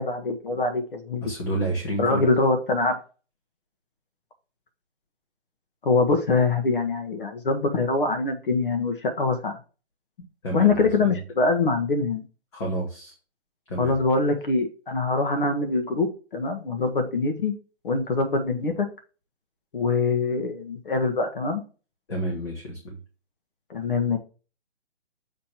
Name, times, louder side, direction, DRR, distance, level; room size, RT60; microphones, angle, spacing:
voice 1, 0.0-1.3 2.0-3.0 5.8-9.6 10.5-12.2 13.8-17.5 17.8-18.9 19.7-21.6 23.7-24.2, left 3 dB, 50° left, 5 dB, 1.1 m, -24 dB
voice 2, 1.2-2.3 10.4-11.2 12.5-13.1 13.7-14.0 22.1-23.0, right 1 dB, 25° left, -2 dB, 1.4 m, -30 dB
7.3 x 2.9 x 5.9 m, 0.37 s
hypercardioid pair, 165°, 34 cm